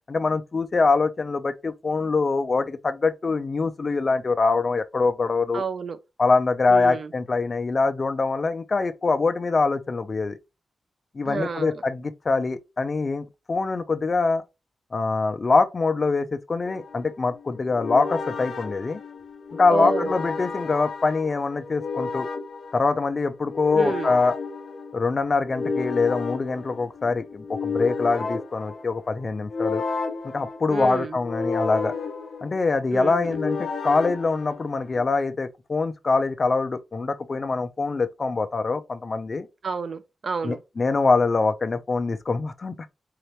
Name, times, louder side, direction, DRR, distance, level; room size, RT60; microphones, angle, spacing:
voice 1, 0.1-5.6 6.2-10.4 11.1-14.4 14.9-19.0 19.5-22.3 22.7-24.3 24.9-29.8 30.3-31.9 32.4-39.5 40.4-42.9, left 3 dB, 35° left, 0.5 m, -24 dB
voice 2, 5.5-6.0 6.7-7.1 11.3-11.8 19.7-20.1 23.7-24.1 30.7-31.2 32.9-33.4 39.6-40.6, right 4 dB, 45° right, 0.4 m, -29 dB
sound 1, 16.6-35.0, left 4 dB, 50° left, 0.8 m, -32 dB
4.0 x 2.9 x 3.2 m
wide cardioid pair, 145°, 0 cm